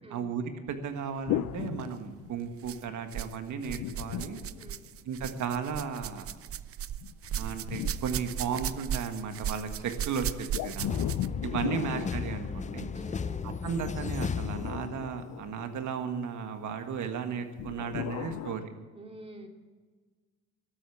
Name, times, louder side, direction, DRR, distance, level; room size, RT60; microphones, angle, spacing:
voice 1, 0.1-4.4 5.1-6.3 7.4-11.0 11.4-12.9 13.4-18.7, right 6 dB, 75° right, 7 dB, 1.7 m, -35 dB
sound 1, 1.3-2.7 3.7-5.3 7.0-9.0 10.5-13.1 14.2-16.1 17.6-18.6, left 13 dB, 80° left, 0.6 m, -37 dB
sound 2, 1.7-1.9 2.6-3.4 3.6-11.4 12.4-12.5 13.3-13.4, right 10 dB, 50° right, 0.5 m, -37 dB
sound 3, 10.9-15.4, left 6 dB, 25° left, 0.5 m, -35 dB
voice 2, 11.3-11.8 12.9-13.4 18.9-19.5, right 1 dB, 20° right, 3 dB, 2.5 m, -48 dB
13.0 x 8.3 x 9.9 m, 1.4 s
cardioid pair, 90°, 30 cm